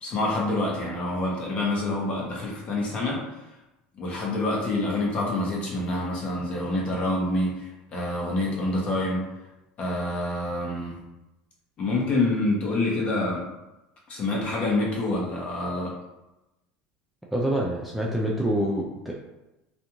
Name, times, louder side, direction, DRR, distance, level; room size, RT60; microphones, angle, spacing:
voice 1, 0.0-3.2 3.9-9.2 9.8-11.0 11.8-13.4 14.1-15.9, left 2 dB, 35° left, -3 dB, 0.8 m, -27 dB
voice 2, 17.3-19.1, right 1 dB, 5° right, -3 dB, 0.3 m, -26 dB
2.5 x 2.3 x 2.9 m, 0.98 s
supercardioid pair, 135°, 3 cm